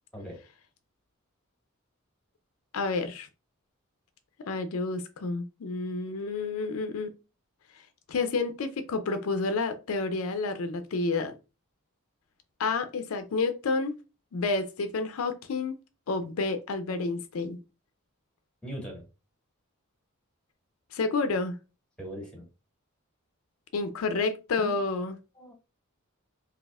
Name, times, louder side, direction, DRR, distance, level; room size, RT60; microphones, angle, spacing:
voice 1, 2.7-3.3 4.5-7.1 8.1-11.3 12.6-14.0 14.3-15.8 16.1-17.6 20.9-21.6 23.7-25.2, left 3 dB, 80° left, 8 dB, 0.4 m, -29 dB
voice 2, 18.6-19.0 22.0-22.4 24.6-24.7 25.4-25.5, equal, 5° left, -1 dB, 1.5 m, -39 dB
4.0 x 2.7 x 2.3 m, 0.30 s
head